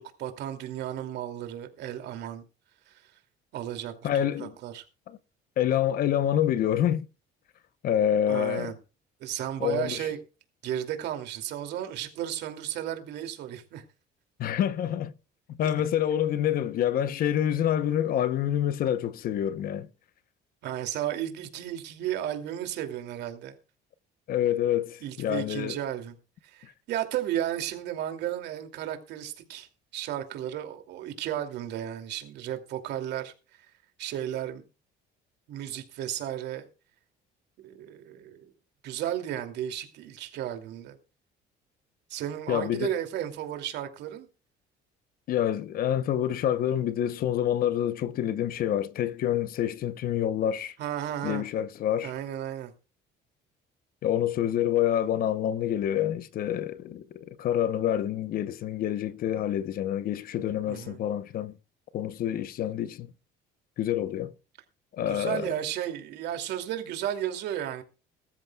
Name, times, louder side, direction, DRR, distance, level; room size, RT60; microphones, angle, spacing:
voice 1, 0.0-2.4 2.9-3.1 3.5-3.9 4.4-4.8 8.3-8.7 9.2-10.2 10.6-13.8 15.6-15.7 20.6-23.6 25.0-26.2 26.4-33.3 34.0-34.6 35.5-36.7 37.6-38.5 38.8-41.0 42.1-44.3 50.8-51.4 52.0-52.7 60.7-61.0 65.0-67.8, right 11 dB, 65° right, 2.7 m, -34 dB
voice 2, 4.0-4.5 5.1-5.2 5.6-7.0 7.8-8.7 9.6-10.1 14.4-15.1 15.5-19.9 24.3-25.8 42.5-42.9 45.3-50.7 51.2-52.1 54.0-61.5 61.9-63.1 63.8-64.3 64.9-65.5, left 10 dB, 55° left, 0.9 m, -27 dB
21.5 x 13.5 x 2.3 m
cardioid pair, 150°, 18 cm